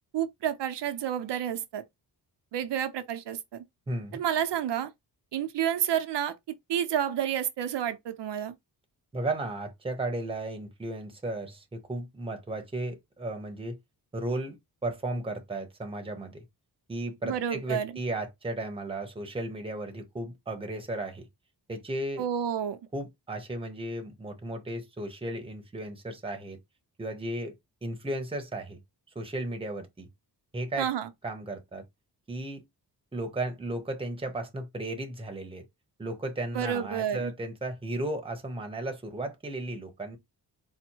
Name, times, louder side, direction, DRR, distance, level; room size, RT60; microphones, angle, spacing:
voice 1, 0.1-1.8 2.5-3.6 4.1-4.9 5.3-6.4 6.7-8.5 17.2-17.9 22.2-22.8 30.8-31.1 36.5-37.3, right 9 dB, 80° right, 0.7 m, -30 dB
voice 2, 3.9-4.2 9.1-13.8 14.1-16.4 16.9-21.3 21.7-22.2 22.9-26.6 27.0-27.5 27.8-28.8 29.1-30.1 30.5-30.9 31.2-31.8 32.3-32.6 33.1-35.6 36.0-40.2, right 1 dB, 15° right, 0.8 m, -35 dB
4.2 x 2.1 x 4.5 m
wide cardioid pair, 160°, 41 cm